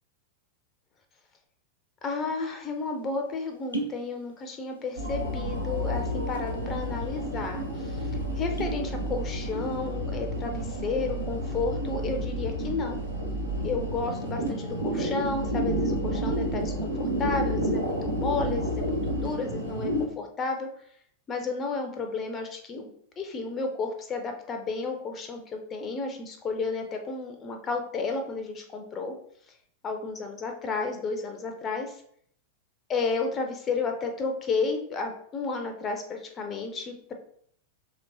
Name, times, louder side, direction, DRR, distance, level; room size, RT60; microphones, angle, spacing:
voice 1, 2.0-13.0 13.6-20.7 21.3-29.1 29.8-32.0 32.9-37.1, left 4 dB, 25° left, 4 dB, 0.4 m, -32 dB
sound 1, 2.7-2.8 3.5-4.1 4.3-5.0 5.3-5.4 6.1-6.6 7.1-7.2 7.5-7.7 8.3-8.9 9.3-9.7, right 2 dB, 80° left, 0.5 m, -35 dB
sound 2, 5.0-20.1, equal, 80° right, 0.6 m, -30 dB
3.1 x 3.0 x 2.5 m, 0.64 s
figure-of-eight pair, 90°, 0 cm